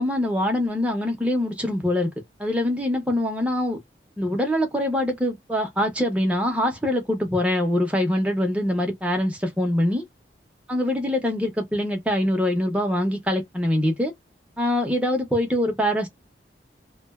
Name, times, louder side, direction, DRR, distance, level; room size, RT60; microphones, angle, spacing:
voice 1, 0.0-2.1 2.4-3.8 4.2-10.1 10.7-14.1 14.6-16.1, left 1 dB, 10° right, 0.8 m, -24 dB
2.4 x 2.2 x 2.3 m
head